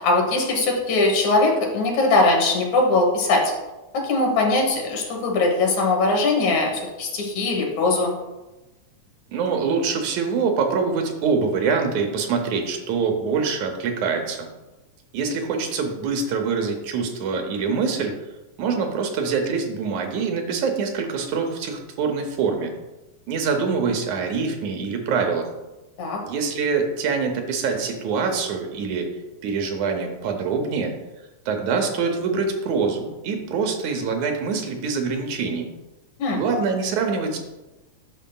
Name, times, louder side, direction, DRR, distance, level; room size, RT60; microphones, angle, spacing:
voice 1, 0.0-3.4 3.9-8.1 26.0-26.2 36.2-36.4, left 2 dB, 75° left, 1 dB, 2.6 m, -21 dB
voice 2, 9.3-14.5 15.1-18.1 18.6-22.7 23.3-25.5 26.3-29.1 29.4-31.0 31.5-35.7 36.3-37.4, right 5 dB, 80° right, 4 dB, 2.2 m, -24 dB
9.0 x 6.2 x 2.3 m, 1.1 s
omnidirectional pair, 3.4 m